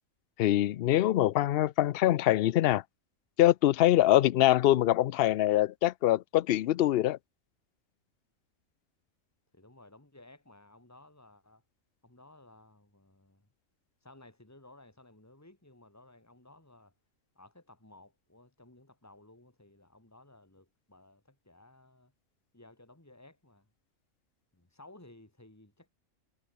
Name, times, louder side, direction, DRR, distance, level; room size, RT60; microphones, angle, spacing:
voice 1, 0.4-2.8 3.4-7.2, left 14 dB, 65° left, 0.6 m, -24 dB
voice 2, 9.5-11.6 12.0-13.5 14.0-16.9 17.3-22.1 22.5-23.7 24.5-25.9, left 2 dB, 10° left, 3.3 m, -57 dB
omnidirectional pair, 1.4 m